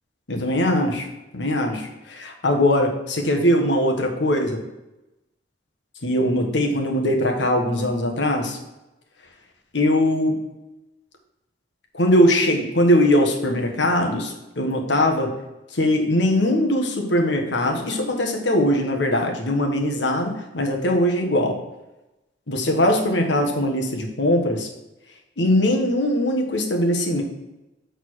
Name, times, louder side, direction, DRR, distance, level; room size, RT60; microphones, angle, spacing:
voice 1, 0.3-1.1 1.3-4.6 6.0-8.6 9.7-10.3 11.9-15.3 15.7-21.6 22.5-24.7 25.4-27.2, left 1 dB, 80° left, 2 dB, 1.3 m, -21 dB
6.6 x 4.0 x 6.2 m, 0.97 s
head